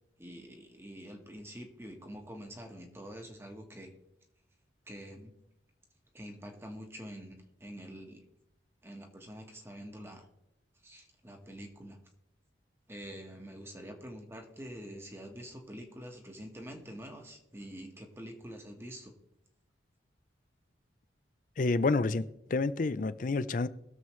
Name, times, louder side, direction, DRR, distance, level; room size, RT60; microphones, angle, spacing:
voice 1, 0.2-3.9 4.9-5.3 6.1-8.2 8.8-10.3 10.8-12.0 12.9-19.1, equal, 15° right, 1.3 m, -46 dB
voice 2, 21.6-23.7, left 3 dB, 45° left, 0.4 m, -29 dB
21.0 x 7.2 x 3.2 m
head